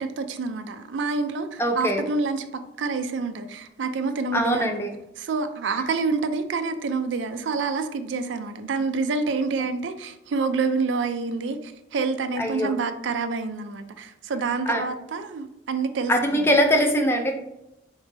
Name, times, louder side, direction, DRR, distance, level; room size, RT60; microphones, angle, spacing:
voice 1, 0.0-4.9 5.2-16.5, right 4 dB, 85° right, 9 dB, 0.4 m, -28 dB
voice 2, 1.6-2.0 4.3-4.9 12.4-12.7 14.7-14.9 16.1-17.3, equal, 15° left, 4 dB, 0.4 m, -22 dB
4.0 x 3.2 x 3.2 m, 0.89 s
head